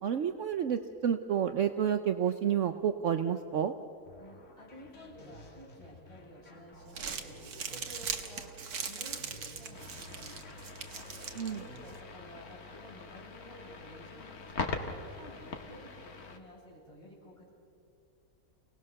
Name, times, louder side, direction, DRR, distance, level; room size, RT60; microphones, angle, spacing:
voice 1, 0.0-3.7 11.3-11.6, right 8 dB, 60° right, 8 dB, 1.0 m, -30 dB
sound 1, 4.0-12.1, left 1 dB, 55° left, 2.2 m, -55 dB
voice 2, 4.2-7.4 7.7-8.5 8.9-10.6 11.5-14.8 15.2-17.5, equal, 20° left, -6 dB, 8.0 m, -52 dB
Crumpling crinkling, 6.7-12.0, right 6 dB, 90° right, 1.9 m, -41 dB
sound 2, 9.7-16.4, left 4 dB, 80° left, 2.1 m, -42 dB
29.5 x 18.5 x 6.6 m, 2.4 s
omnidirectional pair, 1.6 m